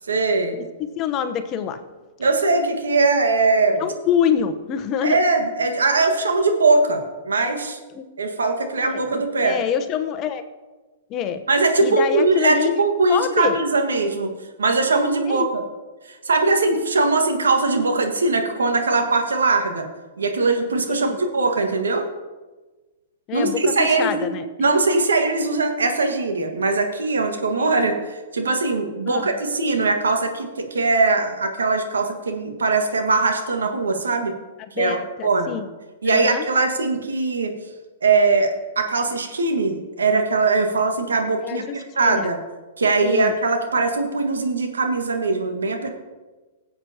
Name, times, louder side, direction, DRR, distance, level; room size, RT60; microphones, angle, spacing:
voice 1, 0.1-0.6 2.2-3.9 5.0-7.8 8.2-9.6 11.5-14.3 14.6-15.6 16.1-19.8 20.2-22.1 23.3-24.3 24.6-34.3 34.8-35.5 36.0-37.5 38.0-42.4 42.8-45.9, right 3 dB, 85° right, 4 dB, 1.6 m, -21 dB
voice 2, 1.0-1.8 3.8-5.2 7.9-8.0 8.8-10.4 11.1-11.4 11.8-13.6 15.3-15.5 20.9-21.2 23.3-24.4 27.5-27.7 29.1-29.2 34.7-35.6 36.0-36.5 41.4-42.3 43.0-43.3, left 8 dB, 35° left, 9 dB, 0.9 m, -26 dB
17.0 x 8.0 x 2.9 m, 1.2 s
hypercardioid pair, 115°, 0 cm